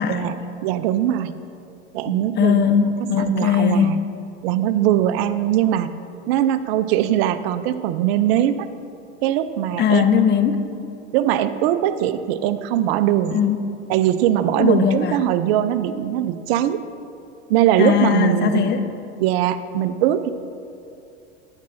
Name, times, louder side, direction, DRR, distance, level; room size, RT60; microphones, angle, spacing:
voice 1, 0.0-0.5 2.1-4.0 9.8-10.6 13.3-13.6 14.6-15.2 17.8-18.9, left 8 dB, 30° left, 8 dB, 0.8 m, -19 dB
voice 2, 0.6-1.3 1.9-2.7 3.2-4.0 4.4-5.9 6.3-8.7 9.2-10.0 11.1-13.4 13.9-16.8 17.5-18.7 19.2-20.3, right 11 dB, 60° right, 12 dB, 0.6 m, -21 dB
13.5 x 9.7 x 2.6 m, 2.6 s
hypercardioid pair, 90°, 34 cm